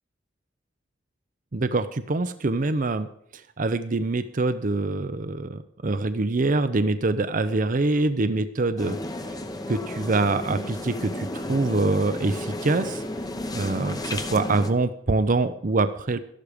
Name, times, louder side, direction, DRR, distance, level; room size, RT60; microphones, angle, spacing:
voice 1, 1.5-9.4 9.7-13.0 13.5-16.2, right 3 dB, 45° right, 12 dB, 0.6 m, -25 dB
sound 1, 8.8-14.7, left 1 dB, 20° left, 0.9 m, -33 dB
13.5 x 11.5 x 5.0 m, 0.68 s
head